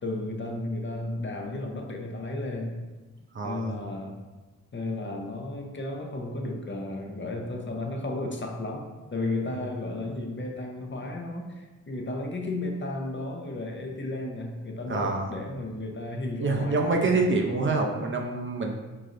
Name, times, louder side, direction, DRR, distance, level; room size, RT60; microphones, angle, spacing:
voice 1, 0.0-2.8 3.4-4.2 4.7-17.2, left 2 dB, 35° left, 1 dB, 0.7 m, -33 dB
voice 2, 3.3-3.7 14.9-15.3 16.4-18.7, right 3 dB, 40° right, 2 dB, 0.6 m, -26 dB
4.7 x 2.7 x 2.5 m, 1.2 s
supercardioid pair, 40°, 32 cm